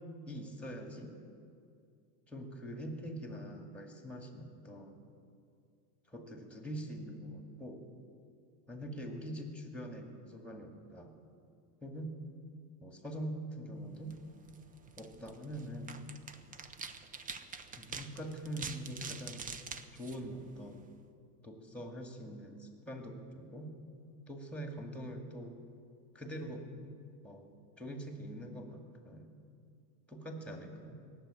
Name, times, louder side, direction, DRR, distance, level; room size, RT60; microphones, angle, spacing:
voice 1, 0.3-1.2 2.3-5.0 6.1-7.8 8.7-11.1 11.8-12.1 12.8-14.2 15.0-16.0 17.8-19.5 19.9-20.8 21.4-23.7 24.3-25.5 26.1-26.6 27.2-27.5 27.8-29.3 30.1-31.0, equal, 5° left, 4 dB, 2.2 m, -44 dB
sound 1, 14.0-20.9, right 5 dB, 15° right, 0.6 m, -47 dB
18.0 x 7.6 x 10.0 m, 2.3 s
supercardioid pair, 115°, 48 cm